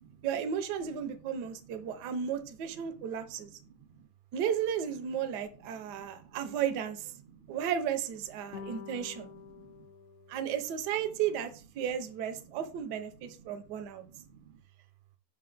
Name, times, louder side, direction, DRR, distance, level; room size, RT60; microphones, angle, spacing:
voice 1, 0.2-3.5 4.3-7.1 7.5-9.3 10.3-14.0, right 8 dB, 70° right, 1.2 m, -34 dB
voice 2, 2.7-4.1 5.2-5.3 5.6-6.4 7.2-7.6 8.4-9.9 11.8-11.9 12.4-12.5 13.2-14.6, right 7 dB, 85° right, 1.7 m, -57 dB
sound 1, 8.5-11.1, left 6 dB, 65° left, 1.0 m, -48 dB
6.2 x 4.4 x 3.8 m
omnidirectional pair, 2.1 m